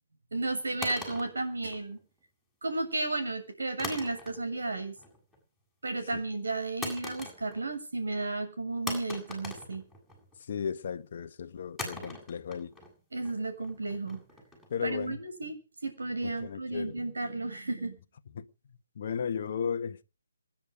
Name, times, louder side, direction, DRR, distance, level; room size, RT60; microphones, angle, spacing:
voice 1, 0.3-2.0 2.6-5.0 5.8-9.8 13.1-14.2 14.8-15.6 15.8-18.0, right 2 dB, 60° right, 7.4 m, -33 dB
sound 1, 0.8-2.2 3.8-4.6 4.9-5.4 6.8-7.8 8.0-8.1 8.9-10.4 11.8-14.8, left 2 dB, 5° right, 7.9 m, -41 dB
voice 2, 10.5-12.7 14.7-15.2 16.2-16.9 18.3-18.5 18.9-20.0, left 7 dB, 40° left, 1.4 m, -35 dB
27.0 x 10.5 x 5.2 m
figure-of-eight pair, 140°, 0 cm